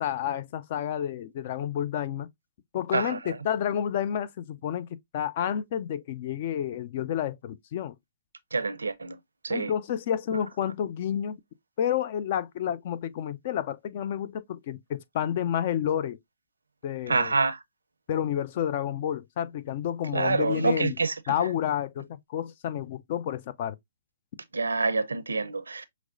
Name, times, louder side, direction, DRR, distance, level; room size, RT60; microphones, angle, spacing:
voice 1, 0.0-2.3 2.7-4.9 5.1-7.9 9.5-11.4 11.8-16.2 16.8-17.3 18.1-21.0 21.3-23.8, left 10 dB, 40° left, 0.4 m, -30 dB
voice 2, 8.5-9.2 9.4-9.7 17.1-17.6 20.1-21.1 24.5-25.8, right 3 dB, 75° right, 0.5 m, -26 dB
5.9 x 2.1 x 2.5 m
figure-of-eight pair, 125°, 0 cm